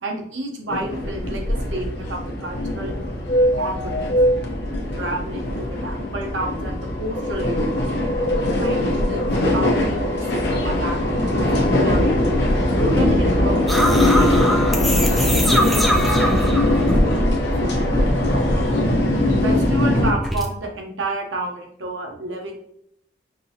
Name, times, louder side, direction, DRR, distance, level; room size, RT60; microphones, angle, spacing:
voice 1, 0.0-3.0 3.5-4.0 4.9-7.8 8.6-12.1 12.7-14.9 15.4-18.0 19.4-22.5, right 1 dB, 85° right, 2 dB, 0.9 m, -31 dB
sound 1, 0.7-20.1, left 1 dB, 65° left, 0.8 m, -20 dB
sound 2, 13.7-17.7 18.0-20.5, equal, ahead, 0.3 m, -24 dB
5.3 x 2.7 x 2.8 m, 0.72 s
head